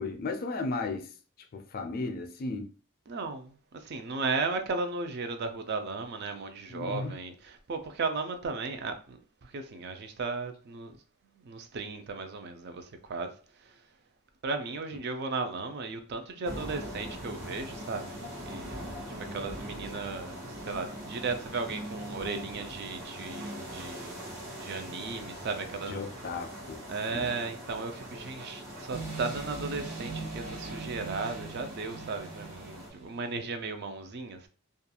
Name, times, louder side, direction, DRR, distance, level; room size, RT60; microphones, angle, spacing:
voice 1, 0.0-2.7 6.7-7.2 25.9-26.8 27.1-27.3, left 3 dB, 40° left, 0.3 m, -35 dB
voice 2, 3.1-11.0 11.5-13.4 13.6-13.7 14.4-24.2 24.5-26.0 26.9-34.5, right 4 dB, 50° right, 0.4 m, -35 dB
sound 1, 16.4-32.9, equal, 75° right, 1.2 m, -42 dB
sound 2, 28.9-33.3, right 3 dB, 90° right, 0.9 m, -41 dB
2.4 x 2.2 x 2.8 m
head